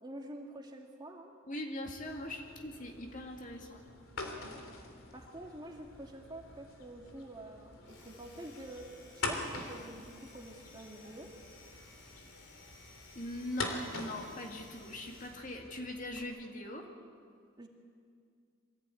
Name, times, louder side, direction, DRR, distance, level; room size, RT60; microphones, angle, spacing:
voice 1, 0.0-1.3 5.1-8.9 9.1-11.3 17.6-17.7, right 1 dB, 20° right, 1 dB, 2.2 m, -47 dB
voice 2, 1.5-3.8 13.1-16.9, left 1 dB, 40° left, 2 dB, 2.2 m, -41 dB
sound 1, 2.1-16.2, left 2 dB, 85° left, 3.0 m, -45 dB
Domestic sounds home sounds, 7.7-15.6, left 3 dB, 60° left, 3.8 m, -58 dB
23.5 x 15.5 x 9.2 m, 2.2 s
head